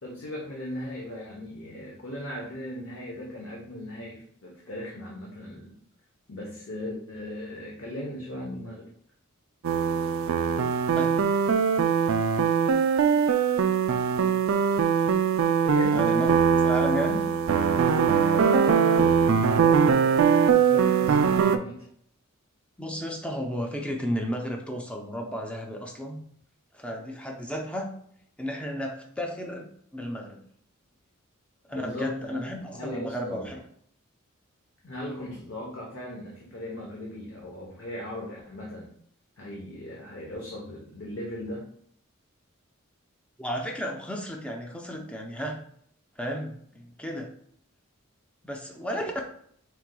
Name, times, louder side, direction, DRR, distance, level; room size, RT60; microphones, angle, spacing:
voice 1, 0.0-5.7 6.3-8.9 15.6-16.0 18.3-21.8 31.7-32.4 32.7-33.6 34.8-38.9 39.4-41.7, left 1 dB, 60° left, -3 dB, 0.9 m, -38 dB
sound 1, 9.6-21.6, right 6 dB, 65° right, 0.3 m, -22 dB
voice 2, 15.9-16.3 16.6-17.2 22.8-26.2 26.7-27.9 28.4-30.4 31.7-33.6 43.4-45.6 46.2-47.3 48.4-49.1, equal, 5° left, 1 dB, 0.5 m, -33 dB
4.7 x 3.7 x 2.2 m, 0.64 s
head